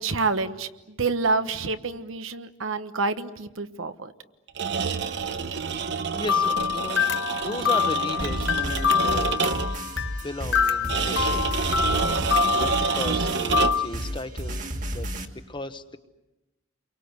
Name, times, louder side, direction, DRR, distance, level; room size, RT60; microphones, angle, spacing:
voice 1, 0.0-4.1, right 3 dB, 90° right, 10 dB, 1.2 m, -28 dB
sound 1, 4.5-9.9 10.9-14.0, right 5 dB, 60° right, 1.0 m, -28 dB
voice 2, 5.3-5.8 6.1-11.4 11.8-15.1 15.3-16.0, left 2 dB, 25° left, 10 dB, 1.0 m, -36 dB
sound 2, 6.3-13.9, left 7 dB, 60° left, 1.1 m, -26 dB
sound 3, 8.2-15.2, equal, 40° right, 1.9 m, -32 dB
29.5 x 23.5 x 8.0 m, 0.99 s
head